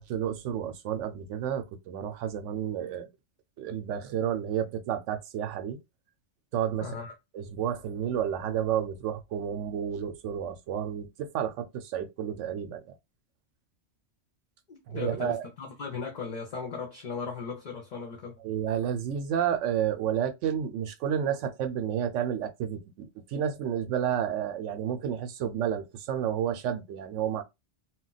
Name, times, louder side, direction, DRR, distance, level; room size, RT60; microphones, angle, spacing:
voice 1, 0.0-3.1 3.6-5.8 6.5-7.0 7.3-12.9 14.9-15.4 18.4-27.4, right 9 dB, 85° right, 0.9 m, -31 dB
voice 2, 6.8-7.1 14.7-18.4, left 5 dB, 50° left, 0.6 m, -37 dB
2.2 x 2.2 x 3.9 m
omnidirectional pair, 1.2 m